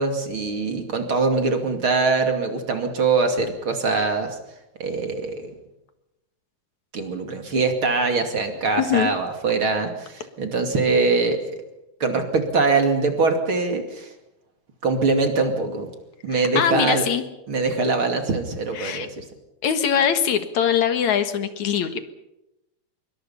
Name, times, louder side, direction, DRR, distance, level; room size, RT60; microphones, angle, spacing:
voice 1, 0.0-4.4 4.8-5.5 6.9-11.4 12.0-14.1 14.8-15.9 16.2-17.0 17.5-19.2, right 3 dB, 45° right, 5 dB, 3.2 m, -23 dB
voice 2, 8.8-9.1 16.3-17.2 18.7-19.1 19.6-22.0, left 8 dB, 70° left, 9 dB, 2.9 m, -22 dB
25.5 x 23.0 x 5.7 m, 0.91 s
omnidirectional pair, 3.4 m